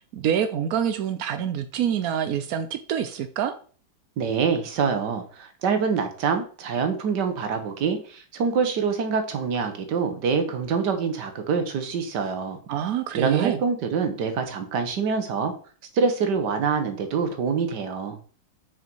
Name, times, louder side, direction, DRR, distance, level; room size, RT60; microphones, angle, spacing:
voice 1, 0.1-3.5 12.7-13.6, right 9 dB, 85° right, 9 dB, 0.8 m, -26 dB
voice 2, 4.2-12.6 13.1-15.5 15.9-18.2, right 5 dB, 60° right, 7 dB, 1.6 m, -25 dB
6.2 x 5.1 x 4.6 m, 0.42 s
omnidirectional pair, 2.3 m